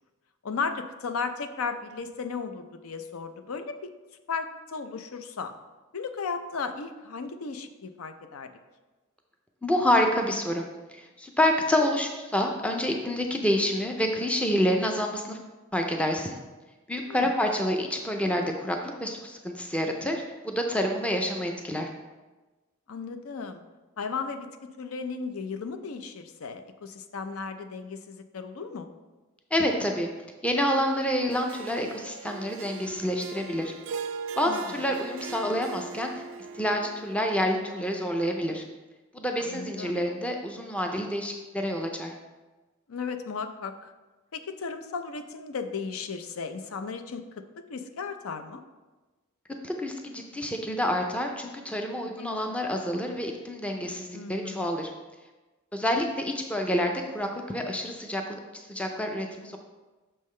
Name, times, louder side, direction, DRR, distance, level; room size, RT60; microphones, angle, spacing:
voice 1, 0.4-3.9 4.3-5.5 5.9-8.5 17.1-17.3 22.9-23.6 24.0-24.5 24.8-28.9 34.5-34.6 39.4-40.0 42.9-43.9 44.3-47.4 47.7-48.6 52.2-52.5 54.1-54.7, left 5 dB, 90° left, 8 dB, 0.5 m, -35 dB
voice 2, 9.6-10.6 10.9-15.4 15.7-16.4 16.9-21.9 29.5-30.1 30.4-33.7 34.4-36.1 36.5-38.6 39.1-42.1 49.6-54.9 55.7-59.6, equal, 5° left, 3 dB, 0.4 m, -28 dB
Harp, 31.3-37.7, right 5 dB, 65° right, 0.3 m, -40 dB
6.5 x 5.5 x 3.2 m, 1.2 s
head